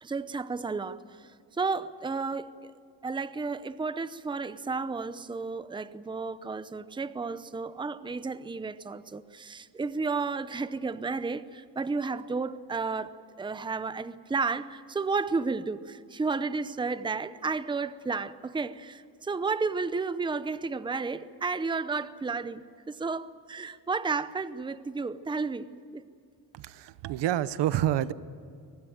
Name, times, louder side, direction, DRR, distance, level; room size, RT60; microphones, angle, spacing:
voice 1, 0.0-2.7 3.0-26.1, right 4 dB, 10° right, 14 dB, 0.7 m, -32 dB
voice 2, 26.5-28.1, right 12 dB, 75° right, 16 dB, 0.9 m, -28 dB
23.5 x 19.0 x 9.0 m, 2.4 s
cardioid pair, 125°, 42 cm